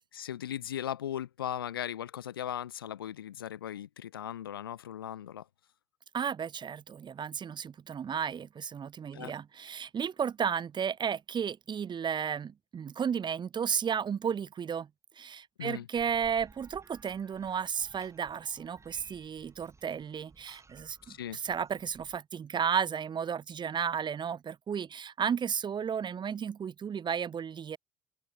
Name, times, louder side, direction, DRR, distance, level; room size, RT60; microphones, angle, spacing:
voice 1, 0.1-5.4 9.1-9.3 15.6-15.9 21.1-21.4, left 10 dB, 85° left, 0.8 m, -38 dB
voice 2, 6.1-14.9 15.2-27.8, right 7 dB, 40° right, 1.1 m, -33 dB
sound 1, 15.9-22.2, right 3 dB, 25° right, 7.3 m, -57 dB
open air
hypercardioid pair, 50°, 12 cm